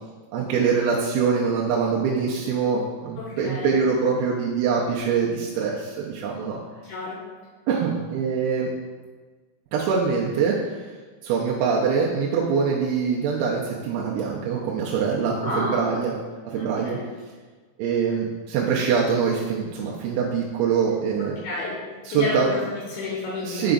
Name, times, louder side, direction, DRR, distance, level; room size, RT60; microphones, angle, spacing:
voice 1, 0.3-6.6 7.7-8.7 9.7-10.8 11.2-16.1 16.5-17.0 17.8-21.4 22.0-22.5 23.4-23.7, right 6 dB, 85° right, -4 dB, 2.9 m, -24 dB
voice 2, 3.2-3.7 6.8-7.2 15.4-15.8 16.5-17.0 21.2-21.8 22.1-23.7, left 3 dB, 75° left, -5 dB, 2.5 m, -30 dB
6.8 x 4.9 x 3.9 m, 1.4 s
omnidirectional pair, 5.6 m